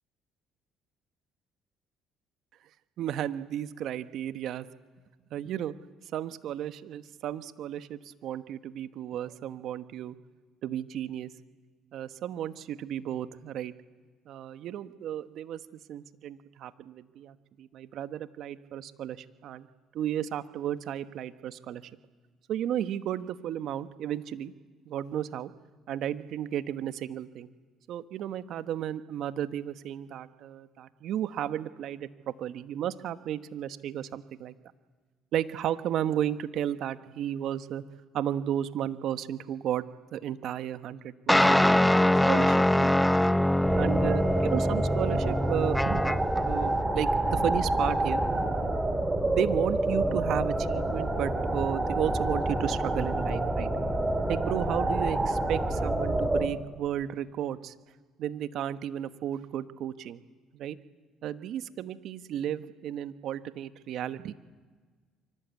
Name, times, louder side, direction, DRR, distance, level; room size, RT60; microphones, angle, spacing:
voice 1, 3.0-4.7 5.3-5.7 6.1-10.2 10.6-11.3 11.9-13.7 14.3-15.6 15.9-19.7 19.9-21.8 22.5-24.5 24.9-25.5 25.9-27.5 27.9-34.5 35.3-37.8 38.1-39.8 40.1-41.8 42.3-42.9 43.7-46.2 46.4-48.9 49.3-53.7 54.3-57.7 58.2-60.2 60.5-60.8 61.2-64.3, right 10 dB, 65° right, 11 dB, 1.2 m, -33 dB
sound 1, 41.3-46.4, left 1 dB, 5° left, 0.8 m, -23 dB
sound 2, 43.6-56.5, right 2 dB, 15° right, 4.1 m, -28 dB
28.0 x 24.5 x 8.3 m, 1.4 s
supercardioid pair, 65°, 0 cm